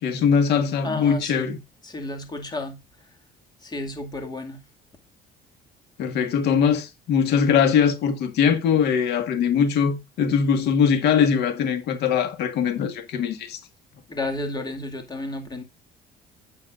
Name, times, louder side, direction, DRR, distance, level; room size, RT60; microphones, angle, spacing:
voice 1, 0.0-1.6 6.0-13.6, left 7 dB, 80° left, 1.7 m, -21 dB
voice 2, 0.8-1.5 1.8-2.8 3.6-4.6 14.1-15.6, left 2 dB, 25° left, 2.3 m, -32 dB
9.6 x 8.9 x 2.5 m
cardioid pair, 110°, 17 cm